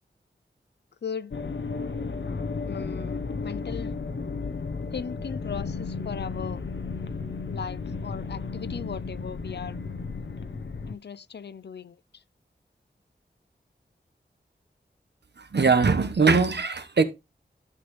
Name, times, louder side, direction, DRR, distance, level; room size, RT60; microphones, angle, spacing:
voice 1, 1.0-1.4 2.6-3.9 4.9-6.6 7.0-7.1 7.5-9.8 10.9-12.0, left 6 dB, 65° left, 0.5 m, -37 dB
sound 1, 1.3-10.9, left 4 dB, 80° left, 0.9 m, -33 dB
voice 2, 15.4-17.0, right 4 dB, 65° right, 1.1 m, -21 dB
11.5 x 6.0 x 3.2 m
wide cardioid pair, 50°, 19 cm